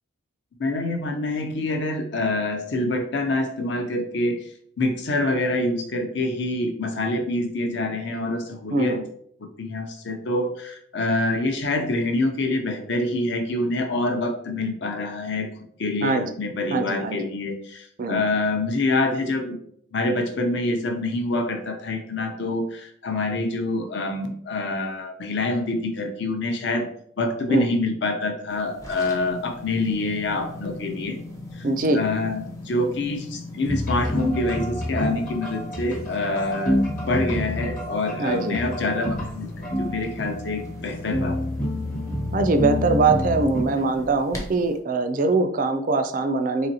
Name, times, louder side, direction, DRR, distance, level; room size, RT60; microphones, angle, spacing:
voice 1, 0.6-4.5 4.8-9.0 9.6-15.5 15.8-19.6 19.9-26.9 27.2-31.2 31.5-31.7 31.9-41.4, left 2 dB, 60° left, 4 dB, 0.6 m, -26 dB
voice 2, 8.7-9.0 16.0-16.3 16.7-17.3 18.0-18.2 27.5-27.7 31.6-32.0 38.2-38.6 42.3-46.7, right 3 dB, 40° right, 8 dB, 0.3 m, -22 dB
sound 1, 28.5-44.8, left 2 dB, 15° left, 0.6 m, -39 dB
sound 2, 33.7-43.6, equal, 40° left, 1.1 m, -28 dB
4.0 x 3.0 x 2.8 m, 0.65 s
head